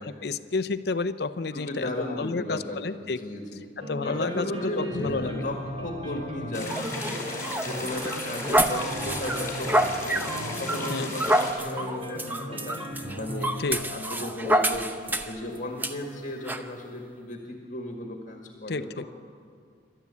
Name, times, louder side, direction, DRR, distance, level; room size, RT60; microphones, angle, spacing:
voice 1, 0.0-3.2 3.8-5.5 6.0-6.2 10.9-11.1 13.6-13.8 18.7-19.1, left 3 dB, 60° left, 13 dB, 0.6 m, -31 dB
voice 2, 1.5-3.7 4.0-7.3 7.6-10.3 10.6-12.8 13.1-13.6 13.9-15.0 15.2-19.1, left 1 dB, 45° left, 2 dB, 1.9 m, -35 dB
sound 1, 3.8-16.7, equal, 35° right, 2.4 m, -38 dB
sound 2, 6.5-11.5, left 2 dB, 15° left, 4.1 m, -36 dB
sound 3, 6.7-15.4 15.8-15.9 16.5-16.7, right 1 dB, 10° right, 0.8 m, -28 dB
27.5 x 12.0 x 8.4 m, 2.2 s
head